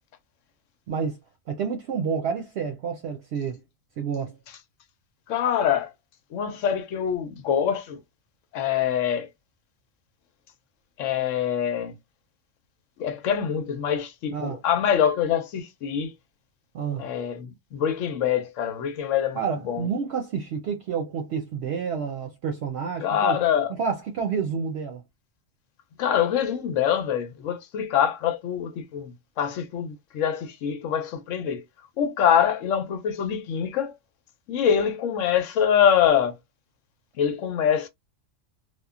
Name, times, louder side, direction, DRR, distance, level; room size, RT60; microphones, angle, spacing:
voice 1, 0.9-1.2 1.5-3.6 4.0-4.4 14.3-14.6 16.7-17.1 19.3-23.4 23.7-25.0, right 6 dB, 65° right, 0.8 m, -29 dB
voice 2, 5.3-5.9 6.3-8.0 8.5-9.3 11.0-11.9 13.0-16.1 17.0-19.9 23.0-23.7 26.0-31.6 32.0-33.9 34.5-36.3 37.2-37.9, left 8 dB, 80° left, 0.9 m, -24 dB
2.9 x 2.1 x 2.3 m
omnidirectional pair, 1.3 m